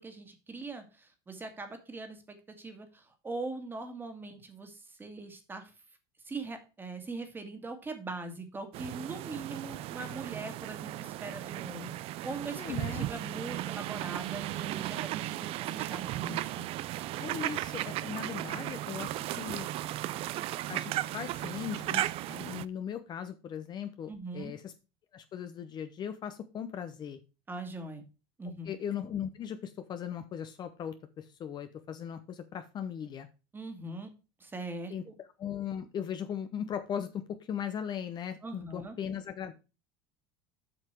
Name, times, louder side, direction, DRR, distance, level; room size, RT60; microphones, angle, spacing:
voice 1, 0.0-5.7 6.3-16.6 24.1-24.5 27.5-28.0 28.4-28.7 33.5-34.1 34.4-35.1 38.4-39.0, right 3 dB, 15° right, 7 dB, 1.9 m, -41 dB
sound 1, 8.7-22.6, right 15 dB, 50° right, 0.5 m, -36 dB
voice 2, 12.5-13.1 17.2-19.7 20.7-24.7 25.1-27.2 28.6-33.3 34.9-35.0 35.4-39.5, left 8 dB, 35° left, 9 dB, 0.8 m, -38 dB
7.8 x 5.9 x 4.5 m, 0.30 s
supercardioid pair, 130°, 13 cm